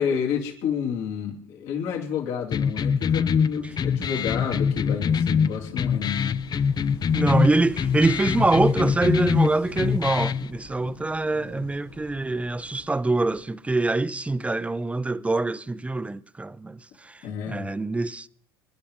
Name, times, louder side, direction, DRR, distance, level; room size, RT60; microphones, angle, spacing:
voice 1, 0.0-6.4 10.8-10.9 11.3-11.6 17.2-17.7, left 7 dB, 70° left, 3.1 m, -29 dB
sound 1, 2.5-10.5, left 6 dB, 35° left, 0.6 m, -24 dB
Wind / Waves surf, 3.4-13.4, left 3 dB, 90° left, 6.1 m, -46 dB
voice 2, 7.1-18.3, right 2 dB, 10° right, 0.6 m, -24 dB
27.5 x 11.0 x 3.7 m
hypercardioid pair, 80°, 12 cm